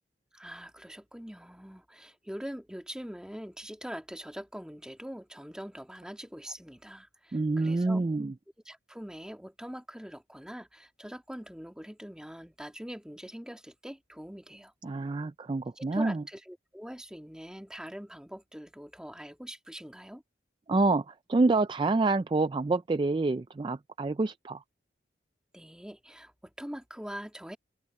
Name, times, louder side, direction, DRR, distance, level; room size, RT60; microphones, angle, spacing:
voice 1, 0.3-8.0 8.6-14.7 15.7-20.2 25.5-27.6, equal, 5° right, 1.7 m, -43 dB
voice 2, 7.3-8.3 14.8-16.2 20.7-24.6, right 3 dB, 25° right, 0.3 m, -27 dB
open air
head